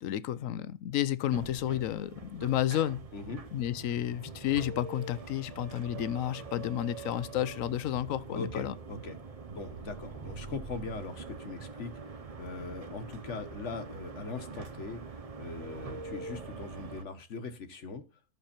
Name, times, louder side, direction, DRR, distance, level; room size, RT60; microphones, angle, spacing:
voice 1, 0.0-3.0 3.5-8.7, left 12 dB, 80° left, 1.1 m, -31 dB
sound 1, 1.3-17.0, right 4 dB, 35° right, 0.8 m, -44 dB
voice 2, 8.3-9.2 9.5-18.0, left 3 dB, 65° left, 1.5 m, -41 dB
11.5 x 6.7 x 4.3 m
omnidirectional pair, 1.4 m